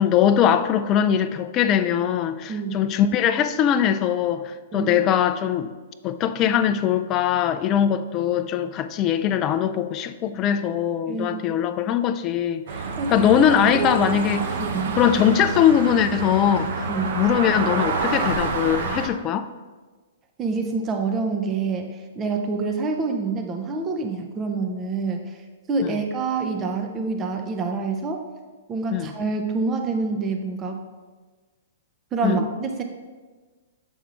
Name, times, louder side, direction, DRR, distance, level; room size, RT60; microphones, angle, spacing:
voice 1, 0.0-5.7 6.0-12.6 13.1-14.5 15.0-16.8 17.1-19.5 25.8-26.0 28.9-29.1 32.2-32.4, left 9 dB, 30° left, 10 dB, 0.4 m, -21 dB
voice 2, 11.1-11.4 13.0-13.4 13.7-14.0 14.6-15.0 16.9-17.2 20.4-25.4 25.7-28.2 28.7-30.8 32.1-32.8, right 4 dB, 25° right, 3 dB, 0.6 m, -27 dB
sound 1, 12.7-19.1, right 4 dB, 60° right, 0.8 m, -27 dB
7.1 x 3.6 x 4.8 m, 1.4 s
hypercardioid pair, 125°, 0 cm